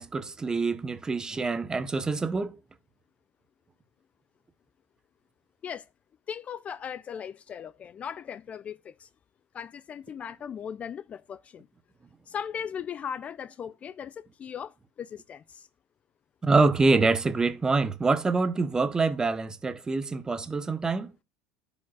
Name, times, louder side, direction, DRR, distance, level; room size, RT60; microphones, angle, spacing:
voice 1, 0.0-2.6 16.4-21.1, right 3 dB, 15° right, 0.7 m, -25 dB
voice 2, 6.3-9.1 9.5-11.7 12.3-15.7, left 8 dB, 30° left, 0.3 m, -38 dB
12.5 x 5.1 x 2.3 m
supercardioid pair, 130°, 5 cm